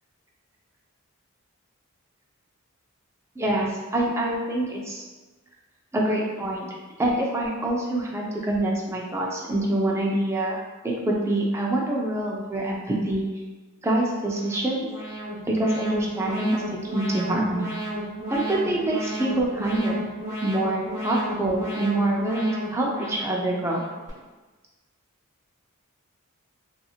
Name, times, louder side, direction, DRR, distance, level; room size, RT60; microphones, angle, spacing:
voice 1, 3.4-5.0 5.9-13.3 13.8-14.9 15.5-16.6 16.9-17.7 18.3-20.0 20.4-23.9, right 1 dB, 10° right, -2 dB, 0.3 m, -25 dB
Alarm, 14.2-24.1, right 1 dB, 35° right, 1.2 m, -33 dB
2.8 x 2.5 x 2.3 m, 1.3 s
head